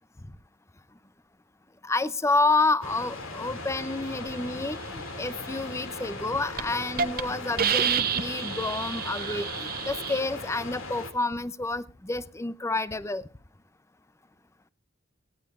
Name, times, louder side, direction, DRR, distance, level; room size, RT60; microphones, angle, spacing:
voice 1, 1.8-13.3, left 3 dB, 15° left, 0.5 m, -29 dB
sound 1, 2.8-11.1, left 2 dB, 75° left, 2.5 m, -38 dB
Hiss, 6.0-6.2 6.6-6.7 7.0-7.2 7.6-10.2, right 8 dB, 45° right, 0.8 m, -28 dB
17.5 x 17.0 x 2.5 m
head